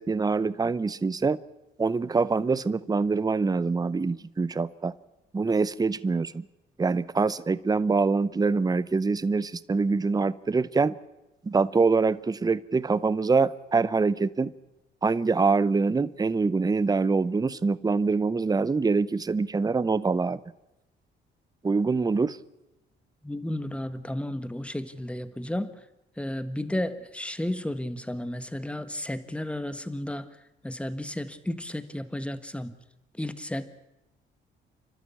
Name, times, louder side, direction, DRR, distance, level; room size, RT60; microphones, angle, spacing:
voice 1, 0.0-1.4 1.8-4.9 5.3-6.5 6.8-11.0 11.4-14.5 15.0-20.4 21.6-22.4, right 4 dB, 20° right, 18 dB, 0.7 m, -25 dB
voice 2, 23.2-25.8 26.2-30.3 30.6-32.8 33.2-33.7, left 1 dB, 5° left, 11 dB, 1.5 m, -33 dB
29.0 x 12.5 x 8.5 m, 0.92 s
cardioid pair, 90°, 20 cm